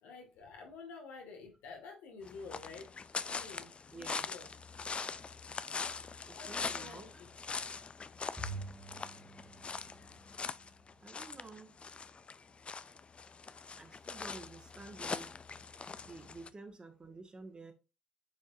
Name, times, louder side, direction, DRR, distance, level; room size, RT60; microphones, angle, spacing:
voice 1, 0.0-2.9 3.2-4.5 6.3-7.3 14.8-14.9 16.0-16.1, left 4 dB, 70° left, 2.0 m, -50 dB
sound 1, 2.2-16.5, left 5 dB, 35° left, 0.5 m, -42 dB
voice 2, 3.9-4.3 6.3-7.1 11.0-11.8 13.8-15.4 16.1-17.7, right 3 dB, 25° right, 1.7 m, -51 dB
Bowed string instrument, 8.4-10.8, right 3 dB, 5° right, 1.7 m, -47 dB
8.6 x 4.5 x 2.7 m
hypercardioid pair, 50°, 3 cm